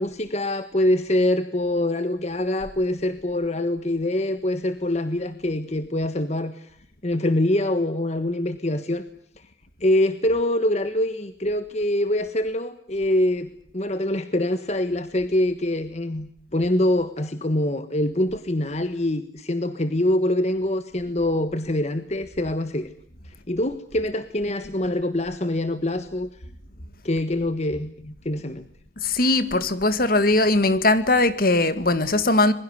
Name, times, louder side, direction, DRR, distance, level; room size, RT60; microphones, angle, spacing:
voice 1, 0.0-6.7 7.0-9.0 9.8-22.9 23.5-26.3 27.0-28.6, left 1 dB, 40° left, 1.4 m, -24 dB
voice 2, 29.0-32.5, left 2 dB, 55° left, 2.0 m, -20 dB
27.0 x 22.0 x 8.1 m
head